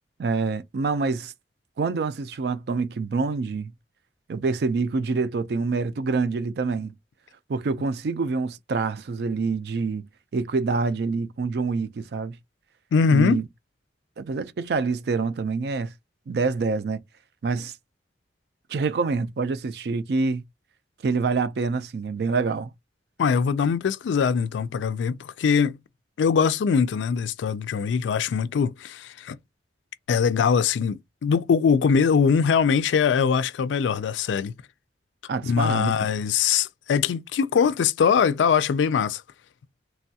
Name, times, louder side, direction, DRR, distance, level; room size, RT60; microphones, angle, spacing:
voice 1, 0.2-1.3 1.8-3.7 4.3-6.9 7.5-10.1 10.3-12.4 13.1-13.5 14.2-15.9 16.3-17.0 17.4-17.8 18.7-20.4 21.0-22.7 35.3-35.9, right 4 dB, 60° right, 0.4 m, -26 dB
voice 2, 12.9-13.4 23.2-25.8 26.2-29.4 30.1-34.5 35.4-39.2, left 6 dB, 85° left, 0.3 m, -22 dB
3.2 x 2.3 x 2.7 m
head